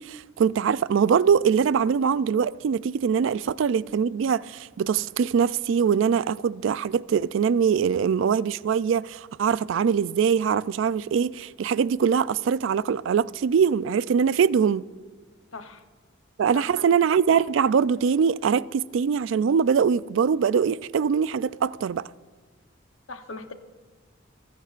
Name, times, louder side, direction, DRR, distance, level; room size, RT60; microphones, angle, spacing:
voice 1, 0.0-14.8 16.4-22.1, right 7 dB, 65° right, 0.3 m, -23 dB
voice 2, 15.5-15.8 16.5-17.0 23.1-23.5, left 3 dB, 80° left, 0.9 m, -39 dB
26.0 x 10.0 x 2.5 m
head